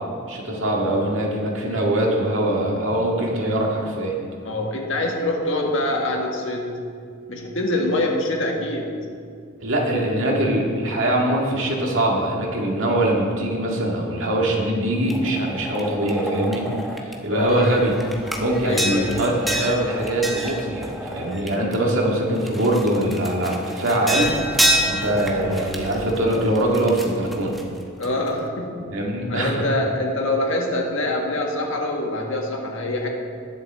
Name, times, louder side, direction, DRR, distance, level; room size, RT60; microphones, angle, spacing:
voice 1, 0.3-4.1 9.6-16.6 17.0-18.0 18.3-24.3 24.8-27.6 28.9-29.7, right 1 dB, 65° right, -1 dB, 2.0 m, -22 dB
voice 2, 4.4-6.7 7.3-8.9 17.3-17.6 18.6-19.1 28.0-28.8 29.3-33.1, left 1 dB, 65° left, 0 dB, 1.6 m, -24 dB
sound 1, 15.1-17.1 17.5-21.9 22.4-28.3, equal, ahead, 0.9 m, -28 dB
20.0 x 7.3 x 3.7 m, 2.3 s
head